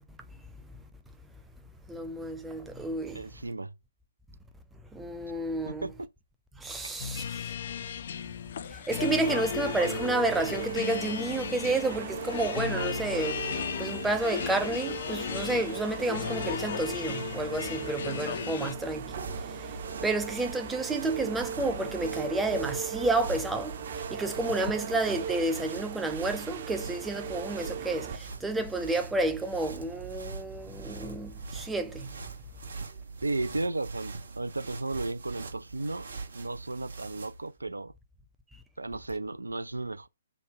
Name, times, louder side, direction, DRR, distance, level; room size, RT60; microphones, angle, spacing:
voice 1, 1.9-3.3 4.9-5.9 6.6-7.4 8.6-13.4 13.8-19.1 19.5-19.8 20.0-32.1, right 2 dB, 5° right, 0.6 m, -30 dB
voice 2, 3.1-3.7 5.7-6.1 33.2-36.1 36.3-37.9 38.8-40.1, right 2 dB, 85° right, 0.4 m, -34 dB
sound 1, 7.0-18.7, left 8 dB, 55° left, 0.3 m, -35 dB
sound 2, 8.9-28.2, right 7 dB, 50° right, 0.7 m, -38 dB
sound 3, 18.7-37.5, right 4 dB, 65° right, 1.3 m, -43 dB
3.5 x 2.1 x 3.5 m
figure-of-eight pair, 125°, 0 cm